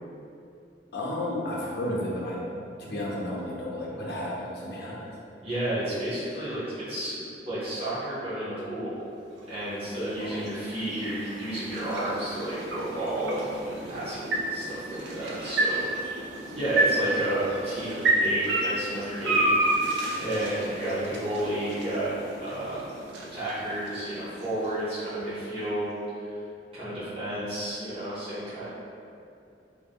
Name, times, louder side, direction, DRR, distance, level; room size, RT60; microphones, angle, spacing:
voice 1, 0.9-2.4 2.8-5.2 10.2-10.5, left 1 dB, 65° left, -4 dB, 0.6 m, -32 dB
voice 2, 5.4-9.0 9.5-19.5 20.2-22.9 23.3-25.9 26.2-26.3 26.7-28.7, right 1 dB, 35° right, -13 dB, 0.7 m, -31 dB
sound 1, 9.2-25.4, right 2 dB, 80° right, 0.4 m, -31 dB
2.4 x 2.1 x 3.4 m, 2.6 s
head